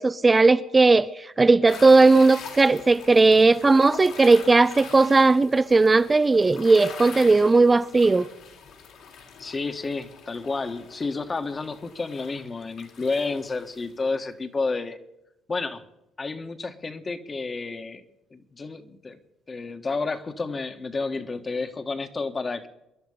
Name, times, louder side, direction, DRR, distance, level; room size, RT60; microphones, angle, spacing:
voice 1, 0.0-8.3, right 3 dB, 25° right, 0.5 m, -17 dB
sound 1, 1.7-13.9, left 6 dB, 70° left, 3.7 m, -43 dB
voice 2, 9.4-15.0 15.5-15.8 16.2-18.0 18.3-19.2 19.5-22.7, left 3 dB, 30° left, 1.6 m, -30 dB
25.5 x 11.0 x 5.2 m
supercardioid pair, 75°, 0 cm